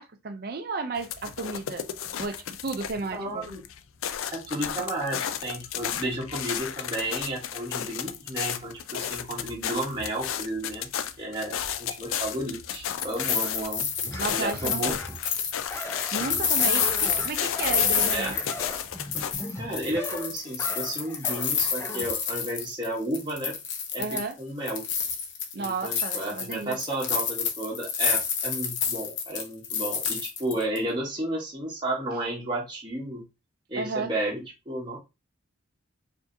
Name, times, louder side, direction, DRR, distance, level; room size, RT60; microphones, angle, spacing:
voice 1, 0.0-1.9 2.2-3.5 14.2-15.0 16.1-18.3 24.0-24.4 25.5-26.8 33.7-34.1, right 3 dB, 50° right, 0.5 m, -33 dB
sound 1, 1.0-3.1 3.4-19.3, left 9 dB, 85° left, 0.4 m, -33 dB
voice 2, 3.1-3.6 4.3-10.9 11.2-14.9 18.1-18.4 19.5-23.5 23.9-24.0 24.4-24.8 25.6-33.2 33.7-34.4 34.7-35.0, right 1 dB, 20° right, 1.1 m, -32 dB
sound 2, 12.7-18.8 19.1-22.9 23.1-24.3 24.7-30.8, left 7 dB, 60° left, 0.8 m, -29 dB
Large Dog Panting and Barking, 14.1-15.3 15.7-22.2, left 1 dB, 15° left, 0.5 m, -38 dB
4.7 x 2.7 x 2.6 m
head